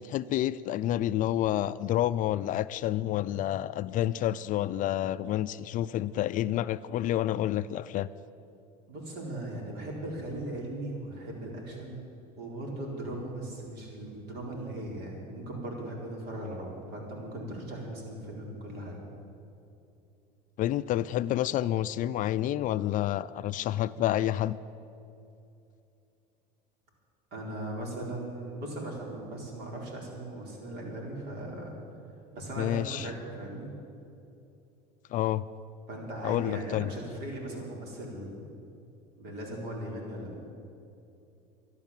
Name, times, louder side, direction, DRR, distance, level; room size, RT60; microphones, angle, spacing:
voice 1, 0.0-8.1 20.6-24.6 32.6-33.1 35.1-35.5 36.2-36.9, left 13 dB, 45° left, 15 dB, 0.4 m, -29 dB
voice 2, 8.9-12.1 12.4-19.0 27.3-31.7 32.3-33.7 35.9-38.5 39.2-40.4, right 1 dB, 60° right, -1 dB, 4.1 m, -38 dB
12.5 x 11.5 x 7.3 m, 2.7 s
supercardioid pair, 115°, 19 cm